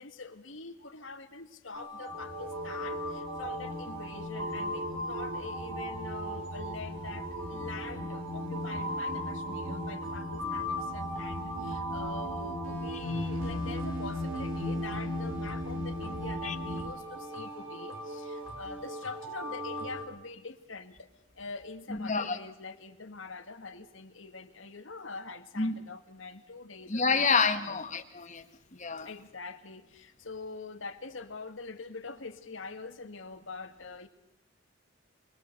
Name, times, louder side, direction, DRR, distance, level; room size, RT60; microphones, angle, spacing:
voice 1, 0.0-21.1 21.3-27.8 29.0-34.1, left 4 dB, 75° left, 8 dB, 1.9 m, -44 dB
sound 1, 1.7-20.0, equal, 90° right, 4.9 m, -38 dB
sound 2, 2.1-16.9, left 1 dB, 50° right, 2.1 m, -38 dB
voice 2, 21.9-22.4 25.6-25.8 26.9-28.4 28.7-29.1, left 4 dB, 40° left, 8 dB, 1.6 m, -28 dB
25.5 x 21.5 x 6.6 m, 0.84 s
head